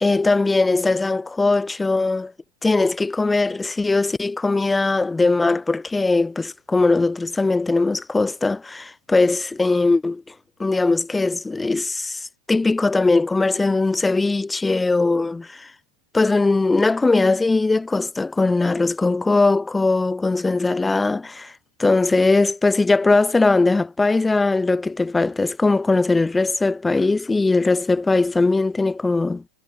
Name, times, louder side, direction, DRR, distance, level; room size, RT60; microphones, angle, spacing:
voice 1, 0.0-2.3 2.6-10.2 10.6-15.7 16.1-21.5 21.8-29.4, left 3 dB, 10° left, 0.6 m, -20 dB
figure-of-eight pair, 90°, 0 cm